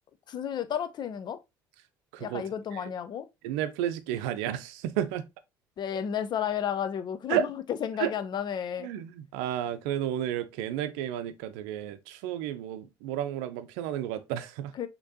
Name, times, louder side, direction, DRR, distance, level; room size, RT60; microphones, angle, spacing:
voice 1, 0.3-1.4 2.2-3.3 5.8-8.9 14.8-14.9, left 9 dB, 50° left, 0.6 m, -32 dB
voice 2, 2.1-2.4 2.7-2.9 3.4-5.3 7.3-7.5 8.0-8.1 8.8-14.7, right 11 dB, 80° right, 0.5 m, -32 dB
6.4 x 2.9 x 2.7 m
hypercardioid pair, 65°, 10 cm